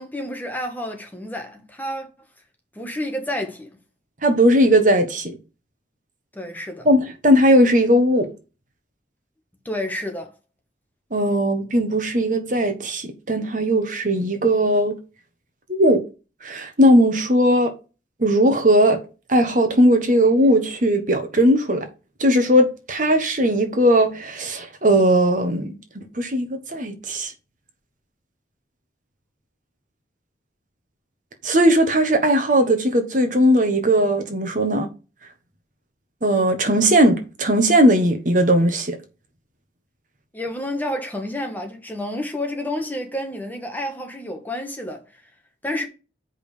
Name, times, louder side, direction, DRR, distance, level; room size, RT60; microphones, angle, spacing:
voice 1, 0.0-2.1 2.7-3.7 6.3-6.9 9.6-10.3 40.3-45.1 45.6-45.9, left 1 dB, 10° left, 1.4 m, -29 dB
voice 2, 4.2-5.4 6.8-8.3 11.1-14.9 15.7-16.0 16.4-17.7 18.2-19.0 19.3-21.8 22.2-25.7 26.2-27.3 31.4-34.9 36.2-39.0, equal, 45° right, 1.4 m, -18 dB
6.4 x 5.3 x 5.0 m
head